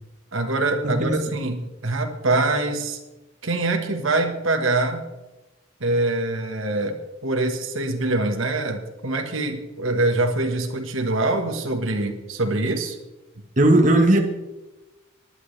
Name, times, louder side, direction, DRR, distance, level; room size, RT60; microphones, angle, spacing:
voice 1, 0.3-3.0 3.4-5.0 5.8-13.0, right 2 dB, 80° right, 4 dB, 1.5 m, -24 dB
voice 2, 0.8-1.3 13.6-14.2, right 1 dB, 35° right, 3 dB, 1.3 m, -17 dB
19.5 x 11.0 x 3.3 m, 1.1 s
head